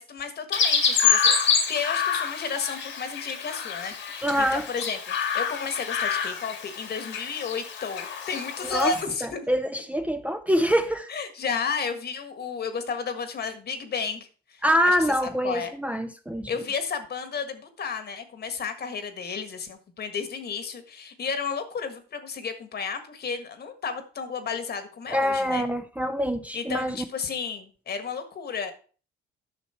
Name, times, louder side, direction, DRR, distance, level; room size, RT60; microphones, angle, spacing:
voice 1, 0.0-5.0 5.3-9.4 11.1-15.0 15.4-15.8 16.5-25.6 26.5-28.7, left 5 dB, 55° left, 1.6 m, -32 dB
Chirp tweet, 0.5-9.0, left 6 dB, 75° left, 2.0 m, -27 dB
voice 2, 4.2-4.7 8.6-8.9 9.2-11.1 14.6-16.5 25.1-27.0, equal, 5° right, 0.7 m, -25 dB
10.0 x 6.0 x 4.4 m
cardioid pair, 90°, 20 cm